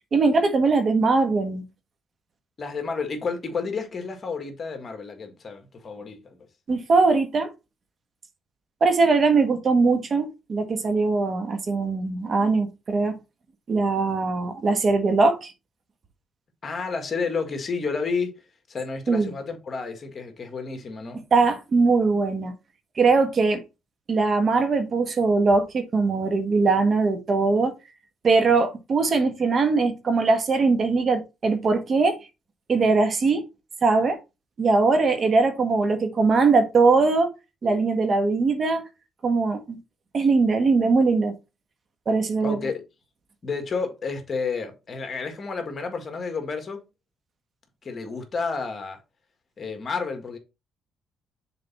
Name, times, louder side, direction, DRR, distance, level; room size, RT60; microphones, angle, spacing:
voice 1, 0.1-1.6 6.7-7.5 8.8-13.2 13.7-15.5 19.1-19.3 21.1-22.5 23.0-23.6 24.1-27.7 28.2-32.2 32.7-33.5 33.8-34.2 34.6-37.3 37.6-38.8 39.2-39.8 40.1-41.3 42.1-42.6, right 4 dB, 45° right, 1.5 m, -21 dB
voice 2, 2.6-6.4 16.6-18.3 18.7-21.2 42.4-42.8 43.4-46.8 47.8-49.0 49.6-50.4, left 4 dB, 40° left, 1.8 m, -30 dB
6.7 x 4.0 x 4.2 m
cardioid pair, 90°, 0 cm